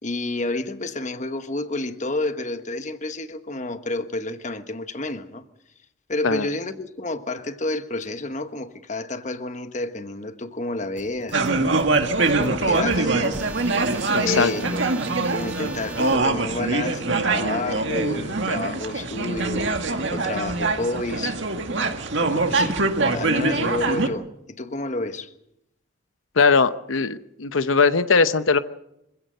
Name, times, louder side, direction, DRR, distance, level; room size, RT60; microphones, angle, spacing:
voice 1, 0.0-5.4 6.1-11.6 12.3-13.4 14.2-14.8 15.3-21.4 22.2-25.3, left 2 dB, 40° left, 1.2 m, -30 dB
sound 1, 11.0-16.2, right 2 dB, 5° right, 3.1 m, -41 dB
sound 2, 11.3-24.1, right 3 dB, 70° right, 2.0 m, -23 dB
voice 2, 14.1-14.5 26.4-28.6, left 4 dB, 90° left, 0.8 m, -20 dB
25.5 x 16.0 x 7.9 m
head